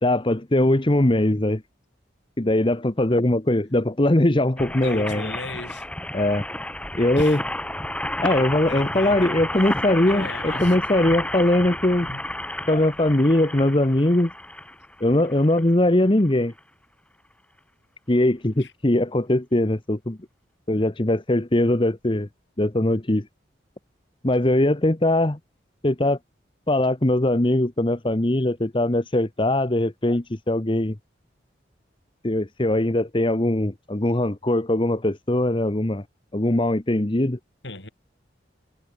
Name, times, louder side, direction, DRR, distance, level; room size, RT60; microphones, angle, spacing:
voice 1, 0.0-1.6 2.4-5.3 6.1-6.4 6.9-7.4 8.2-12.1 12.7-14.3 15.0-16.5 18.1-20.2 20.7-22.3 22.6-23.3 24.2-25.4 25.8-26.2 26.7-31.0 32.2-36.0 36.3-37.4, left 1 dB, 30° left, 1.1 m, -21 dB
sound 1, 4.6-15.7 16.3-16.4 16.6-16.7, left 1 dB, 5° left, 4.1 m, -31 dB
voice 2, 4.8-5.8 7.2-7.4 8.7-9.4 10.0-10.7 12.0-12.2 18.6-18.7 37.6-37.9, left 3 dB, 75° left, 6.2 m, -36 dB
head